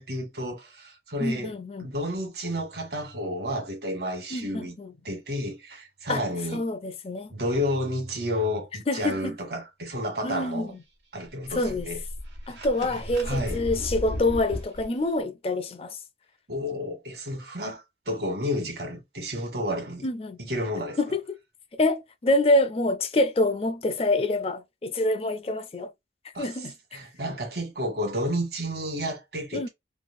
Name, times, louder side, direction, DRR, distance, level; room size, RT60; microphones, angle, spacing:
voice 1, 0.0-1.5 1.8-4.8 5.0-6.6 7.3-10.7 11.1-12.0 12.9-13.6 16.5-20.1 20.4-21.0 26.3-26.5 26.9-29.7, equal, 65° right, 1.4 m, -31 dB
voice 2, 1.2-1.9 4.3-4.9 6.1-6.2 6.5-7.3 8.9-9.4 10.2-10.7 11.5-11.9 12.5-16.0 20.0-20.4 21.0-21.2 21.8-25.9 26.4-27.0 29.5-29.7, left 2 dB, 35° left, 0.4 m, -26 dB
sound 1, 11.3-14.8, equal, 80° right, 1.2 m, -35 dB
3.1 x 2.4 x 2.5 m
head